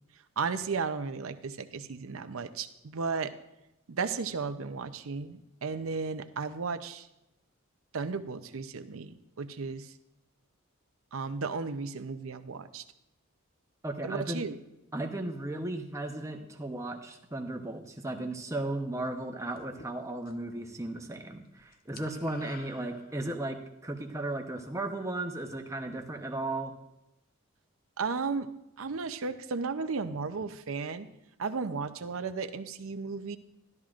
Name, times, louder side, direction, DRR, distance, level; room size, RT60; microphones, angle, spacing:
voice 1, 0.4-3.3 3.9-7.1 7.9-9.9 11.1-12.8 14.0-14.6 28.0-28.5 28.8-31.1 31.4-33.4, right 4 dB, 80° right, 10 dB, 0.6 m, -34 dB
voice 2, 13.8-14.5 14.9-26.7, right 2 dB, 15° right, 3 dB, 0.8 m, -35 dB
sound 1, 19.6-20.5 20.8-21.2 21.4-23.5, left 4 dB, 45° left, 0.6 m, -51 dB
13.0 x 12.0 x 2.5 m, 0.88 s
head